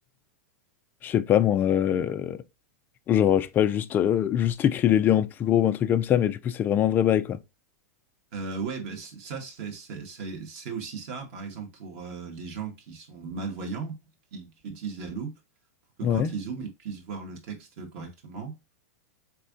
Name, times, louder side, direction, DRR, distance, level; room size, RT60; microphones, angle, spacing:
voice 1, 1.0-2.4 3.1-7.4 16.0-16.3, left 10 dB, 25° left, 0.3 m, -23 dB
voice 2, 8.3-13.9 14.3-15.3 16.0-18.5, right 5 dB, 55° right, 1.4 m, -36 dB
3.6 x 3.2 x 2.5 m
hypercardioid pair, 135°, 9 cm